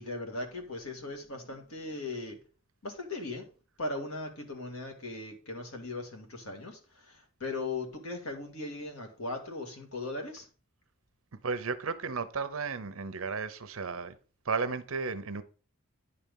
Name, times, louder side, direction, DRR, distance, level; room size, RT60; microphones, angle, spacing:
voice 1, 0.0-2.4 2.8-3.5 3.8-10.5, left 2 dB, 80° left, 2.0 m, -38 dB
voice 2, 11.4-14.2 14.4-15.4, right 4 dB, 70° right, 0.7 m, -34 dB
9.9 x 4.4 x 5.3 m
head